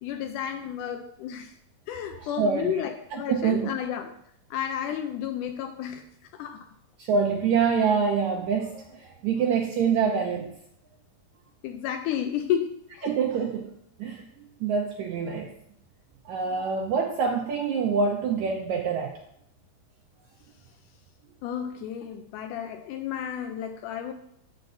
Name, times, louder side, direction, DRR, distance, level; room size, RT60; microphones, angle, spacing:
voice 1, 0.0-1.5 1.9-4.1 4.5-6.0 6.3-6.7 11.6-13.1 21.4-24.1, left 9 dB, 90° left, 6 dB, 1.8 m, -32 dB
voice 2, 2.4-2.7 3.3-3.7 7.0-10.5 13.0-13.7 14.0-14.2 14.6-15.5 16.2-19.2, right 6 dB, 85° right, 1 dB, 1.6 m, -25 dB
13.5 x 7.8 x 2.7 m, 0.72 s
omnidirectional pair, 4.3 m